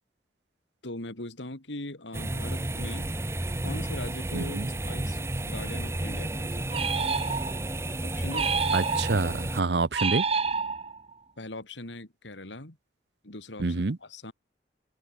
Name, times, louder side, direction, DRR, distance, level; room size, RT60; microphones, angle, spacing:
voice 1, 0.8-3.1 3.6-6.9 8.0-8.6 11.4-12.8 13.2-14.3, left 2 dB, 85° left, 3.3 m, -41 dB
sound 1, 2.1-9.6, right 1 dB, 15° right, 0.7 m, -32 dB
voice 2, 4.3-4.7 8.7-10.2 13.6-14.0, right 3 dB, 65° right, 0.8 m, -27 dB
sound 2, 6.7-7.7 8.3-9.4 9.9-11.1, right 5 dB, 35° right, 1.2 m, -28 dB
open air
head